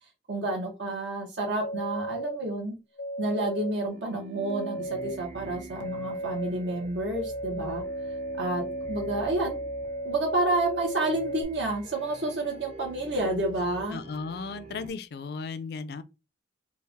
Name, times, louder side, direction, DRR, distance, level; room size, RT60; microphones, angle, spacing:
voice 1, 0.3-2.7 3.2-7.8 8.4-9.6 10.0-14.0, right 2 dB, 80° right, 1.1 m, -29 dB
sound 1, 1.6-2.4 3.0-3.7 4.5-5.2 5.8-6.5 7.1-11.4, right 1 dB, 90° left, 0.8 m, -35 dB
sound 2, 3.9-14.9, right 2 dB, 35° right, 0.6 m, -45 dB
voice 2, 13.9-16.0, left 4 dB, 60° left, 0.4 m, -35 dB
3.3 x 2.4 x 3.4 m
head